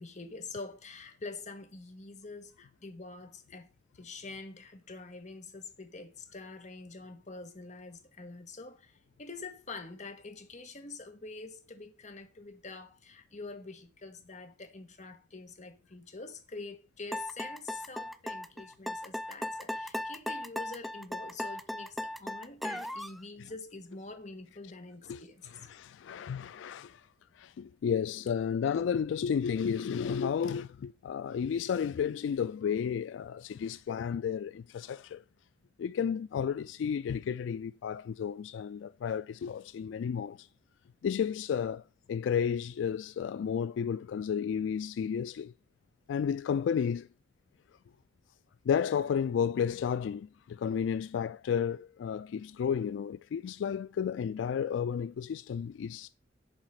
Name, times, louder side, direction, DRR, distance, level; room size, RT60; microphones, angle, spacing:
voice 1, 0.0-3.7 3.9-25.7, left 3 dB, 40° left, 1.5 m, -46 dB
sound 1, 17.1-23.2, left 1 dB, ahead, 0.4 m, -37 dB
voice 2, 25.5-27.0 27.4-35.2 35.8-40.5 41.0-41.8 42.1-45.5 46.1-47.1 48.6-56.1, left 7 dB, 90° left, 0.3 m, -32 dB
7.4 x 4.8 x 6.5 m
head